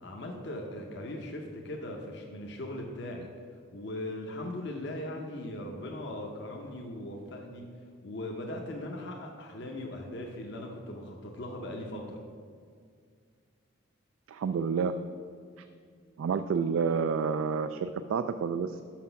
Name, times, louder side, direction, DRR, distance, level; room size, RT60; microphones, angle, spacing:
voice 1, 0.0-3.3 3.7-7.7 8.0-12.2, left 1 dB, 55° left, 1 dB, 0.7 m, -39 dB
voice 2, 14.3-14.9 16.2-18.8, right 6 dB, 80° right, 10 dB, 0.3 m, -29 dB
6.2 x 5.9 x 5.6 m, 2.1 s
head